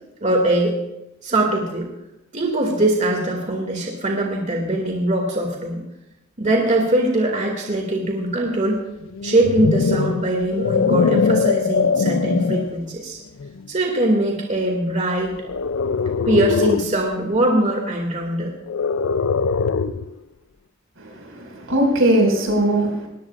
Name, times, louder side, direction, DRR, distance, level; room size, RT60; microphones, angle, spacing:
voice 1, 0.2-0.8 1.2-1.9 2.3-5.8 6.4-8.8 9.2-13.2 13.7-15.4 16.3-18.6, right 1 dB, 35° right, 1 dB, 2.4 m, -21 dB
sound 1, 9.1-12.8 13.4-13.7 15.4-17.0 18.6-20.1, left 5 dB, 75° left, 0.5 m, -21 dB
voice 2, 21.0-23.1, right 1 dB, 85° right, 1 dB, 5.7 m, -20 dB
21.5 x 18.5 x 2.5 m, 0.91 s
head